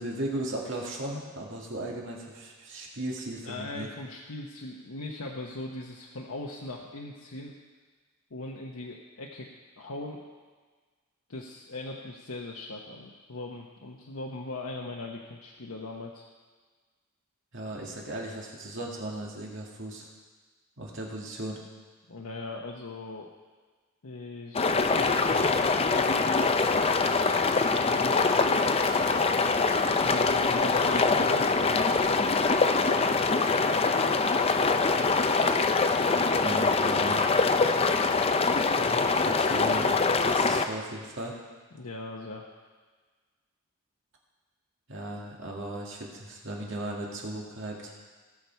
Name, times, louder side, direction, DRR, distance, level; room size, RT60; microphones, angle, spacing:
voice 1, 0.0-3.9 17.5-20.1 20.8-21.6 36.3-37.2 39.3-41.4 44.9-47.9, right 1 dB, 60° right, -2 dB, 2.1 m, -36 dB
voice 2, 3.4-7.5 8.3-9.5 9.8-10.2 11.3-16.2 22.1-23.3 24.0-26.7 27.7-28.7 29.9-32.3 38.7-39.6 41.7-42.5, left 2 dB, 85° left, -1 dB, 1.0 m, -40 dB
sound 1, 24.5-40.6, left 4 dB, 30° left, 0.5 m, -24 dB
17.5 x 6.8 x 4.5 m, 1.4 s
head